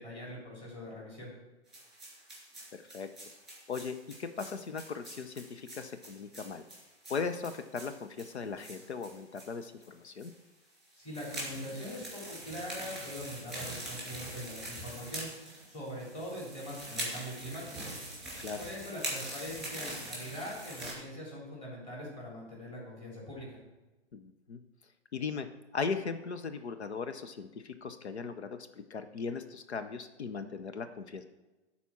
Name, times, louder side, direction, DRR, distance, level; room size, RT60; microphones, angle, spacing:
voice 1, 0.0-1.3 10.9-15.3 15.7-17.9 18.6-23.6, equal, 20° left, -6 dB, 3.6 m, -42 dB
sound 1, 1.7-9.5 9.8-9.9 10.2-10.3 10.9-20.9, right 1 dB, ahead, 2.4 m, -43 dB
voice 2, 2.7-3.1 3.7-6.6 7.1-10.3 18.4-18.6 24.1-24.6 25.1-25.5 25.7-28.6 28.9-31.2, left 5 dB, 70° left, 9 dB, 0.8 m, -38 dB
11.0 x 4.3 x 5.9 m, 1.1 s
figure-of-eight pair, 125°, 34 cm